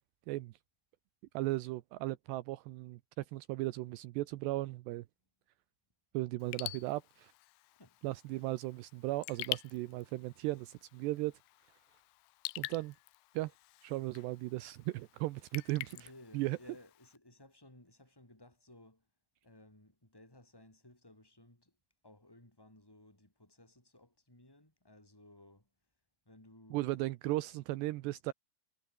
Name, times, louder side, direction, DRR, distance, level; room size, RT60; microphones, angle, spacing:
voice 1, 1.3-5.0 6.1-7.3 8.0-11.3 12.6-12.9 13.3-13.5 13.8-16.1 16.3-16.6 26.7-28.3, right 18 dB, 80° right, 2.9 m, -36 dB
Raindrop / Drip, 6.4-17.2, left 21 dB, 85° left, 2.9 m, -47 dB
voice 2, 7.6-8.0 8.3-8.5 15.9-19.1 19.4-21.7 22.0-25.7 26.3-26.9, left 1 dB, 5° left, 7.2 m, -59 dB
omnidirectional pair, 5.0 m